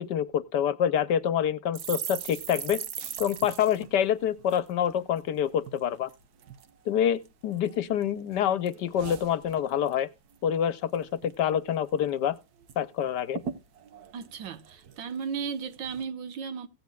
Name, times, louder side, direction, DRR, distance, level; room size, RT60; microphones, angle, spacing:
voice 1, 0.0-2.8 3.2-6.1 6.9-10.1 10.4-12.4 12.8-13.4, left 9 dB, 70° left, 1.3 m, -27 dB
sound 1, 1.7-5.3 5.6-5.8 6.1-6.7 7.2-8.0 8.3-10.0 10.3-10.5 10.8-11.4 11.7-11.8 12.1-12.8 13.0-13.1 13.3-15.2 15.7-16.0, right 8 dB, 60° right, 1.4 m, -40 dB
voice 2, 14.1-16.7, right 6 dB, 80° right, 1.8 m, -35 dB
16.5 x 9.4 x 2.3 m
omnidirectional pair, 2.1 m